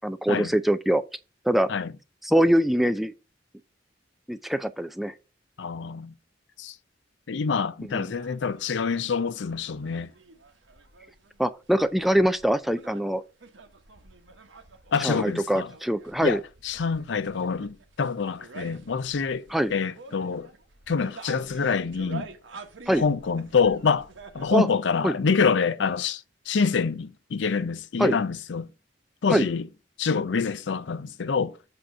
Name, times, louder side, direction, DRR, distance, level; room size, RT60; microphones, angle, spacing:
voice 1, 0.0-1.0 1.5-1.7 2.2-3.1 4.3-5.1 7.8-8.1 11.4-13.2 15.0-16.4 19.5-19.7 22.9-23.0 24.5-24.7 25.0-25.1 28.0-28.2 29.3-29.5, right 1 dB, ahead, 0.3 m, -23 dB
voice 2, 5.6-6.1 6.6-6.7 7.3-10.1 14.9-15.7 16.2-16.4 16.6-20.5 20.9-22.3 23.0-24.1 24.3-28.7 29.2-29.7 30.0-31.6, left 5 dB, 70° left, 0.5 m, -26 dB
sound 1, 7.8-24.6, right 3 dB, 90° right, 1.1 m, -48 dB
7.7 x 2.9 x 6.0 m
head